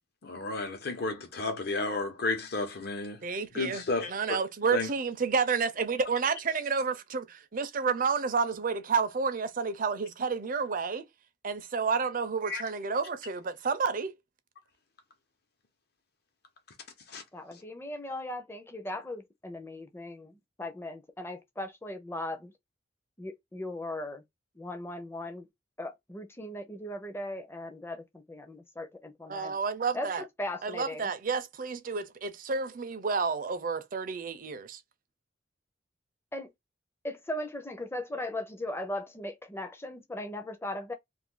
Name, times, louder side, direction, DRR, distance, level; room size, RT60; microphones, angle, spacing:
voice 1, 0.2-3.2 3.5-4.4 4.7-4.9 12.5-12.6 17.1-17.2, left 3 dB, 55° left, 0.9 m, -32 dB
voice 2, 3.2-3.8 4.1-7.2 7.5-11.0 11.4-14.1 29.3-30.2 30.6-34.8, right 5 dB, 45° right, 0.5 m, -30 dB
voice 3, 17.3-22.5 23.2-24.2 24.6-25.5 25.8-29.5 29.9-31.1 36.3-36.5 37.0-40.9, left 1 dB, 15° left, 0.6 m, -38 dB
2.6 x 2.5 x 3.7 m
head